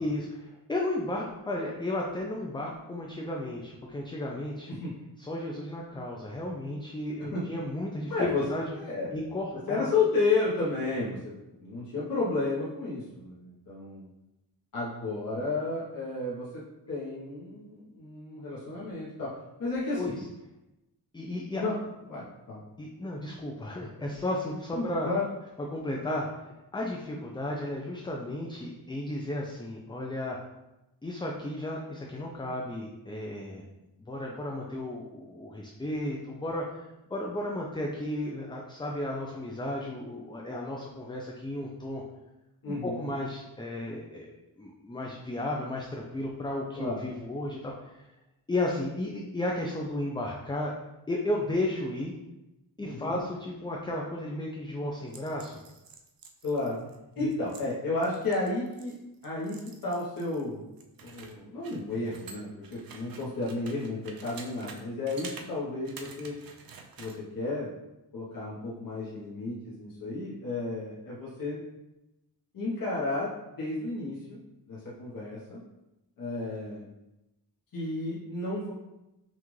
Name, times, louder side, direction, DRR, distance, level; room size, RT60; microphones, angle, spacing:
voice 1, 0.0-4.8 5.2-8.7 9.1-9.9 20.0-20.2 21.1-21.6 22.8-25.1 25.6-30.4 31.0-33.6 34.0-36.8 37.1-42.0 42.7-44.3 44.6-48.0 48.5-50.7 51.1-52.1 52.8-55.6 57.2-57.3, left 1 dB, 10° left, -1 dB, 0.4 m, -34 dB
voice 2, 8.1-8.4 8.7-9.1 9.5-11.2 11.6-14.1 14.7-16.6 16.9-20.2 21.6-21.8 22.1-22.6 24.8-25.2 42.6-43.0 46.8-47.0 52.8-53.2 56.4-56.8 57.2-58.9 59.2-60.6 61.0-66.4 67.0-67.7 68.1-71.6 72.5-74.4 74.7-75.6 76.2-76.8 77.7-78.7, left 3 dB, 60° left, -8 dB, 1.1 m, -32 dB
sound 1, 55.1-60.4 60.8-64.8 65.1-65.5 65.8-67.2, right 5 dB, 60° right, 0.6 m, -48 dB
5.7 x 2.5 x 3.1 m, 0.96 s
wide cardioid pair, 110°, 39 cm